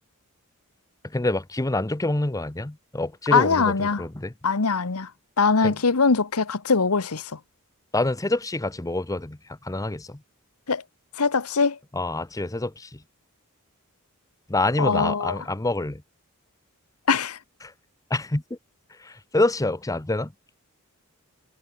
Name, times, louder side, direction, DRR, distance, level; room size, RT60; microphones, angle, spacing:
voice 1, 1.0-4.3 5.6-5.7 7.9-10.2 11.9-13.0 14.5-16.0 17.6-17.7 18.1-18.6 19.0-20.3, left 2 dB, 15° left, 0.8 m, -26 dB
voice 2, 3.3-4.0 4.4-5.1 5.4-7.4 10.7-10.8 11.2-11.8 14.8-15.4 17.1-17.4, left 4 dB, 85° left, 1.1 m, -22 dB
head